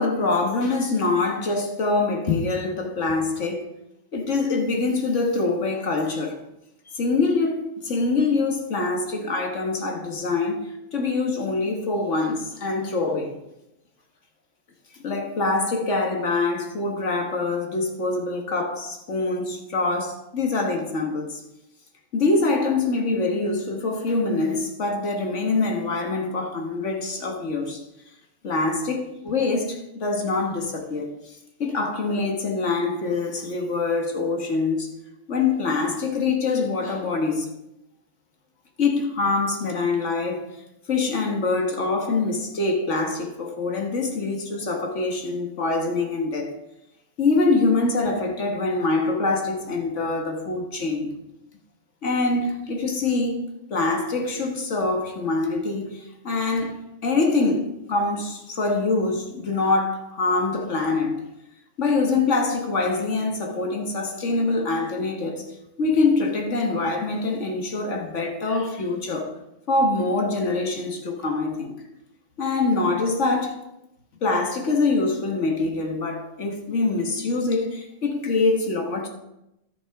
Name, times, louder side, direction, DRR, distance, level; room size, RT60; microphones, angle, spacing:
voice 1, 0.0-3.7 4.1-6.4 6.9-13.4 15.0-21.4 22.1-27.8 28.4-31.1 31.6-34.9 35.3-37.5 38.8-40.5 40.9-46.5 47.2-51.1 52.0-53.4 53.7-61.2 61.8-65.5 65.8-69.3 69.7-71.7 72.4-73.5 74.2-79.1, left 3 dB, 70° left, 1.7 m, -24 dB
12.0 x 7.0 x 4.8 m
omnidirectional pair, 1.3 m